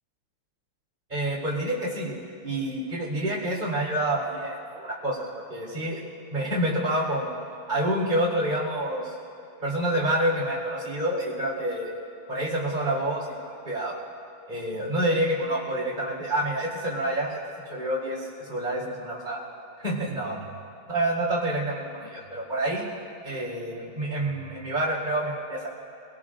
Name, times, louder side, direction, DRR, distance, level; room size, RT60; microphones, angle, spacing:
voice 1, 1.1-2.2 2.4-6.0 6.3-7.3 7.7-9.1 9.6-11.9 12.3-14.0 14.5-17.4 17.7-19.4 19.8-20.5 20.9-22.8 23.2-25.7, right 1 dB, 20° right, -4 dB, 4.0 m, -28 dB
25.5 x 18.0 x 2.6 m, 2.8 s
omnidirectional pair, 2.4 m